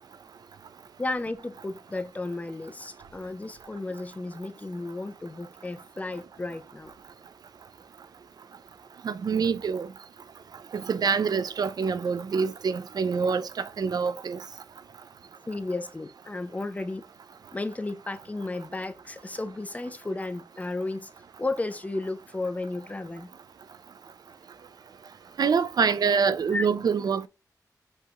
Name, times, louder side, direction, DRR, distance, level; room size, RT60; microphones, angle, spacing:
voice 1, 1.0-6.9 15.5-17.0 17.5-21.1 21.4-23.3 26.5-26.7, left 2 dB, 20° left, 0.5 m, -33 dB
voice 2, 9.0-9.9 10.7-14.4 25.4-27.3, right 5 dB, 70° right, 0.4 m, -26 dB
5.4 x 2.9 x 2.4 m
wide cardioid pair, 110°, 7 cm